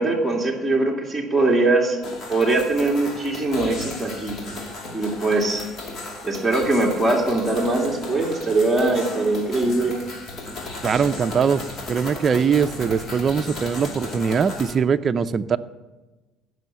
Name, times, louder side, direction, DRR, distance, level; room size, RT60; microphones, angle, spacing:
voice 1, 0.0-2.0 2.3-4.4 4.9-5.7 6.2-9.9, right 2 dB, ahead, -3 dB, 2.1 m, -21 dB
sound 1, 2.0-14.7, left 2 dB, 50° left, 2.6 m, -35 dB
voice 2, 10.8-11.6 11.9-15.6, right 6 dB, 35° right, 10 dB, 0.5 m, -21 dB
15.5 x 6.3 x 6.9 m, 1.2 s
cardioid pair, 105°, 0 cm